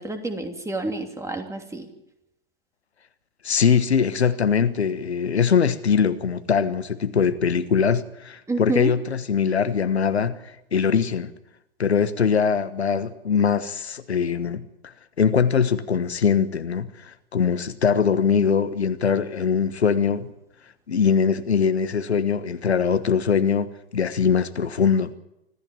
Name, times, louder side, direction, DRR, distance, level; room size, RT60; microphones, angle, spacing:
voice 1, 0.0-1.9 8.5-8.9, right 2 dB, 10° right, 2.9 m, -28 dB
voice 2, 3.4-11.3 11.8-14.6 15.2-20.3 20.9-25.1, left 6 dB, 80° left, 1.3 m, -22 dB
25.5 x 14.5 x 7.4 m
figure-of-eight pair, 95°, 32 cm